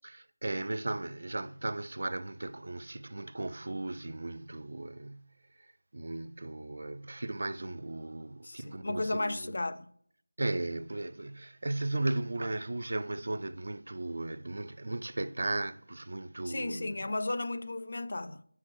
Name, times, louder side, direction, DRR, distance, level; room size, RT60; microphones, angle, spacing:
voice 1, 0.0-5.3 5.6-9.5 10.4-17.1, right 2 dB, 55° right, 0.3 m, -36 dB
voice 2, 8.4-9.9 16.5-18.4, left 2 dB, 55° left, 0.4 m, -34 dB
8.4 x 6.3 x 2.6 m
figure-of-eight pair, 170°, 0 cm